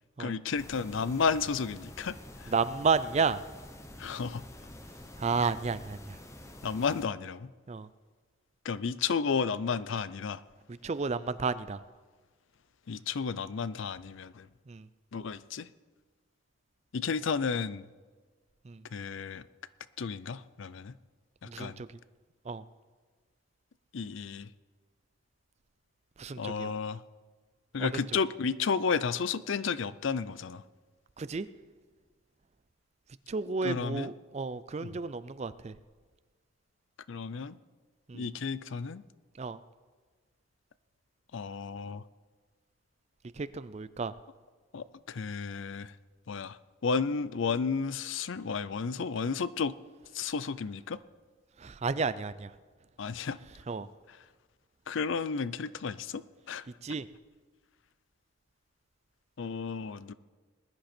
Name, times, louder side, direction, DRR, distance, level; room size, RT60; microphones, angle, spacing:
voice 1, 0.2-2.5 4.0-4.4 6.6-7.5 8.6-10.4 12.9-14.5 15.1-15.7 16.9-17.9 18.9-19.4 20.0-20.9 21.4-21.8 23.9-24.5 26.4-27.0 27.7-30.6 33.6-34.1 34.8-35.0 37.1-37.6 38.1-39.0 41.3-42.0 44.7-45.9 46.3-49.8 50.1-51.0 53.0-53.4 54.1-54.2 54.9-56.6 59.4-60.1, left 5 dB, 65° left, 16 dB, 0.5 m, -32 dB
sound 1, 0.6-7.1, left 1 dB, 15° left, 0.8 m, -48 dB
voice 2, 2.5-3.4 5.2-6.2 7.7-7.9 10.7-11.8 14.7-14.9 18.6-18.8 21.4-21.9 22.5-22.6 26.2-26.7 27.8-28.0 31.2-31.5 33.3-35.7 38.1-38.3 39.4-39.6 43.4-44.1 51.6-52.5 53.7-53.9 56.8-57.1, right 4 dB, 30° right, 15 dB, 0.4 m, -32 dB
20.0 x 10.5 x 4.4 m, 1.4 s
head